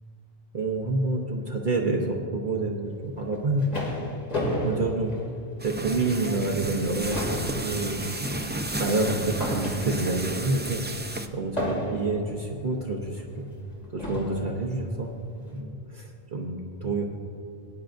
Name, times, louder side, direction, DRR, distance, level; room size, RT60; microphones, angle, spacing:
voice 1, 0.5-3.7 4.6-5.1 5.6-10.8 11.3-13.5 13.9-15.1 15.5-17.0, right 2 dB, 55° right, 1 dB, 1.0 m, -28 dB
sound 1, 3.2-5.9 6.3-6.5 6.8-10.3 11.6-12.3 13.2-13.3 14.0-14.5, equal, 40° left, 2.1 m, -32 dB
sound 2, 5.6-11.3, right 1 dB, 15° right, 0.3 m, -33 dB
19.0 x 10.0 x 2.6 m, 2.7 s
omnidirectional pair, 1.0 m